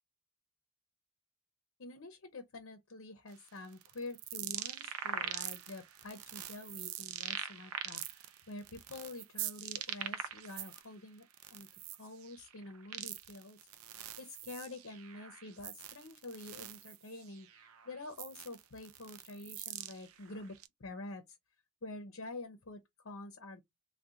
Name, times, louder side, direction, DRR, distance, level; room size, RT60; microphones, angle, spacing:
voice 1, 1.8-11.3 11.5-11.7 12.0-13.6 14.2-21.4 21.8-23.7, left 2 dB, 60° left, 0.7 m, -47 dB
sound 1, 3.3-10.8 11.2-20.7, right 10 dB, 75° right, 0.4 m, -43 dB
3.7 x 2.3 x 2.6 m
head